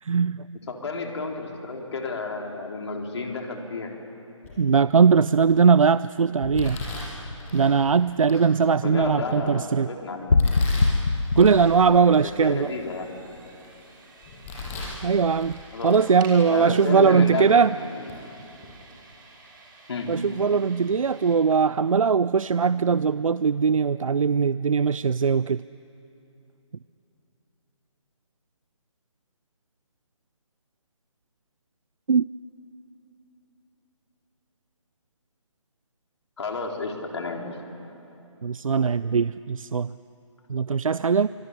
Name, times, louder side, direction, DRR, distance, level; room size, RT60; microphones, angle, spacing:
voice 1, 0.0-0.6 4.6-6.8 7.5-9.9 11.4-12.7 15.0-17.7 20.1-25.6 32.1-32.2 38.4-39.9 40.5-41.3, right 5 dB, 80° right, 16 dB, 0.5 m, -20 dB
voice 2, 0.7-3.9 8.8-10.3 12.2-13.1 15.7-16.0 16.4-17.6 17.9-18.3 19.9-20.2 36.4-37.6, left 3 dB, 55° left, 2 dB, 3.9 m, -31 dB
Domestic sounds home sounds, 4.4-4.8 5.4-5.8 6.5-7.7 8.3-8.4 9.0-9.7 10.4-11.7 12.1-12.2 12.8-13.7 14.2-15.0 15.3-16.1 16.3-16.5 17.3-17.4 18.1-18.2 18.5-18.7, left 2 dB, 25° left, 7.3 m, -37 dB
sound 1, 6.4-7.8 10.3-12.8, left 3 dB, 80° left, 1.4 m, -24 dB
sound 2, 10.6-21.4, right 3 dB, 40° right, 5.0 m, -51 dB
25.5 x 21.0 x 10.0 m, 2.9 s
figure-of-eight pair, 155°, 17 cm